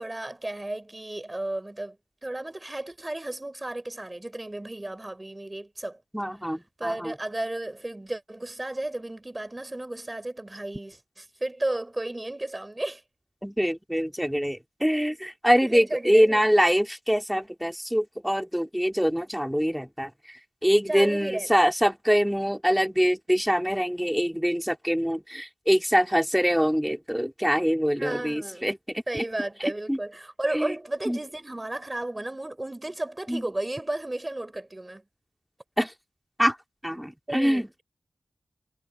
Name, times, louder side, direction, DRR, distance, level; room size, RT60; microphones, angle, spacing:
voice 1, 0.0-2.0 2.2-6.0 6.8-13.0 15.7-16.4 20.9-21.5 28.0-28.7 29.1-35.0 37.3-37.7, right 1 dB, 20° right, 4.3 m, -33 dB
voice 2, 6.1-7.1 13.4-20.1 20.6-29.2 29.9-30.0 30.5-30.7 31.0-31.2 33.3-33.5 35.8-35.9 36.4-36.6 36.8-37.8, equal, ahead, 3.3 m, -24 dB
wide cardioid pair, 85°, 0 cm